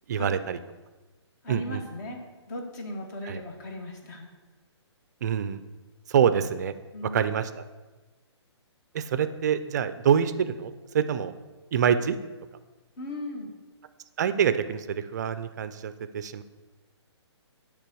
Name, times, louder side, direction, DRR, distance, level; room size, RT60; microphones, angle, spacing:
voice 1, 0.1-0.6 1.5-1.8 3.3-3.4 5.2-5.6 6.1-6.7 7.1-7.5 8.9-11.3 11.7-12.2 14.2-16.4, right 8 dB, 40° right, 12 dB, 0.4 m, -26 dB
voice 2, 1.4-2.2 2.5-4.3 6.9-7.4 13.0-13.5, left 1 dB, 40° left, 2 dB, 1.2 m, -37 dB
8.1 x 3.4 x 6.0 m, 1.2 s
hypercardioid pair, 160°, 15 cm